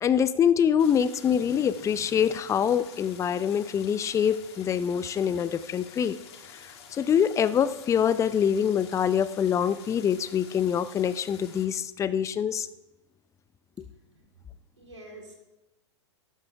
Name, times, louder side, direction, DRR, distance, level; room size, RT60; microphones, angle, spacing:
voice 1, 0.0-6.2 6.9-12.7 13.8-13.9, left 8 dB, 20° left, 15 dB, 0.6 m, -25 dB
Stream, 0.8-11.7, left 7 dB, 60° left, 2.3 m, -49 dB
voice 2, 14.8-15.3, right 1 dB, 85° right, 0 dB, 3.7 m, -47 dB
14.0 x 12.0 x 3.4 m, 1.0 s
figure-of-eight pair, 100°, 15 cm